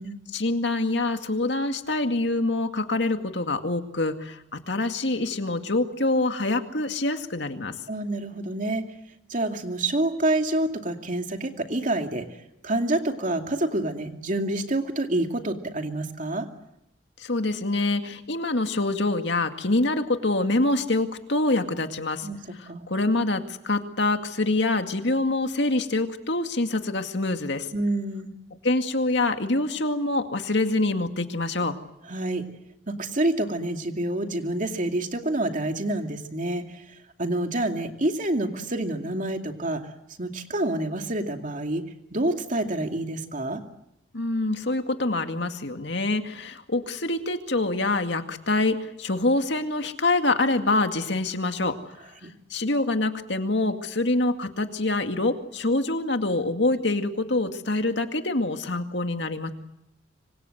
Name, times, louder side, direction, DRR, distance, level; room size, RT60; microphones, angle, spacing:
voice 1, 0.3-7.7 17.2-22.3 22.6-27.7 28.6-31.8 44.1-52.0 52.5-59.5, left 2 dB, 65° left, 6 dB, 2.2 m, -25 dB
voice 2, 7.9-8.9 9.3-12.3 12.6-16.5 22.2-22.4 22.7-22.9 27.7-28.3 32.1-32.5 32.9-39.9 40.2-43.6 52.2-52.3, right 1 dB, 45° right, 5 dB, 2.5 m, -27 dB
26.0 x 25.5 x 7.9 m, 0.83 s
head